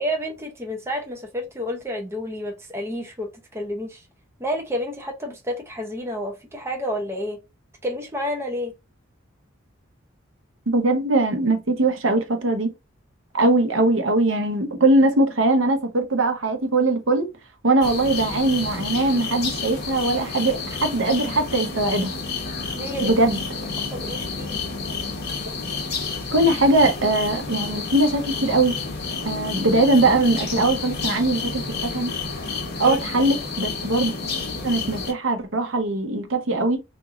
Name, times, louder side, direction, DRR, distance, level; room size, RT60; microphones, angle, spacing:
voice 1, 0.0-4.1 4.4-7.4 7.8-8.7 22.7-23.2 23.5-24.6 32.8-33.0, equal, 15° right, 0.6 m, -30 dB
voice 2, 10.7-12.7 13.3-17.3 17.6-22.1 23.0-23.4 26.3-28.7 29.2-32.1 32.8-34.1 34.6-36.8, right 2 dB, 75° right, 0.9 m, -21 dB
sound 1, 17.8-35.1, left 4 dB, 55° left, 0.9 m, -30 dB
2.9 x 2.7 x 3.5 m
head